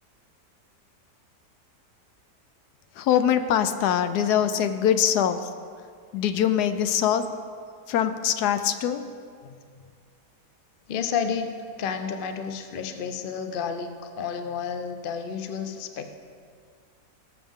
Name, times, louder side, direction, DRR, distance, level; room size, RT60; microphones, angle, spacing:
voice 1, 3.0-5.5 6.1-7.2 7.9-9.1, left 9 dB, 75° left, 10 dB, 1.1 m, -23 dB
voice 2, 10.9-11.5 11.8-16.1, left 6 dB, 55° left, 7 dB, 0.6 m, -31 dB
18.0 x 7.3 x 3.6 m, 2.1 s
omnidirectional pair, 1.8 m